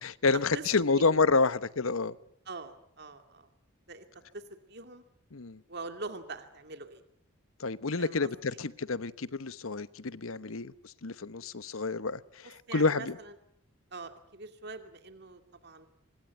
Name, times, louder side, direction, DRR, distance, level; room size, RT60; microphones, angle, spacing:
voice 1, 0.0-2.2 5.3-5.6 7.6-13.2, left 4 dB, 85° left, 1.0 m, -29 dB
voice 2, 2.5-3.5 3.9-4.0 4.3-5.0 5.7-7.0 8.0-8.3 12.7-13.3 13.9-15.9, right 3 dB, 55° right, 2.3 m, -43 dB
26.0 x 21.0 x 9.2 m
head